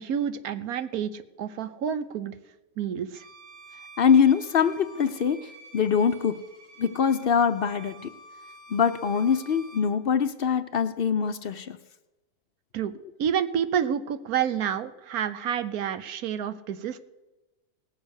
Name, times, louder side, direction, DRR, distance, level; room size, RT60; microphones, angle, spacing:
voice 1, 0.0-2.3 2.8-3.2 12.7-17.0, right 8 dB, 75° right, 12 dB, 1.3 m, -29 dB
Bowed string instrument, 3.1-9.9, right 2 dB, 50° right, 2.6 m, -49 dB
voice 2, 4.0-6.4 6.8-8.1 8.7-11.8, left 7 dB, 55° left, 11 dB, 0.6 m, -23 dB
18.5 x 7.4 x 6.4 m, 1.0 s
omnidirectional pair, 1.6 m